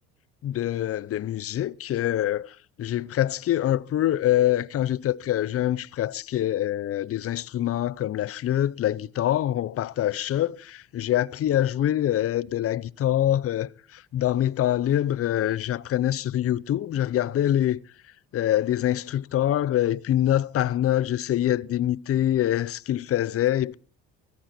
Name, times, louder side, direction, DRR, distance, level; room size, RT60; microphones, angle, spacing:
voice 1, 0.4-17.8 18.3-23.8, left 12 dB, 50° left, 0.7 m, -25 dB
20.0 x 14.5 x 4.4 m
supercardioid pair, 85°, 31 cm